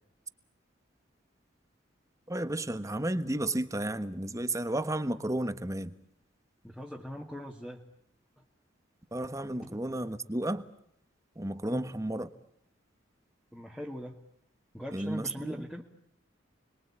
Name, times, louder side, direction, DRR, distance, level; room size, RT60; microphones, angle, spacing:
voice 1, 2.3-5.9 9.1-10.6 11.4-12.3 14.9-15.6, right 1 dB, 15° right, 1.3 m, -32 dB
voice 2, 6.6-7.8 9.6-9.8 11.7-11.9 13.5-14.2 14.7-15.8, equal, 5° left, 2.0 m, -41 dB
30.0 x 22.0 x 8.7 m
head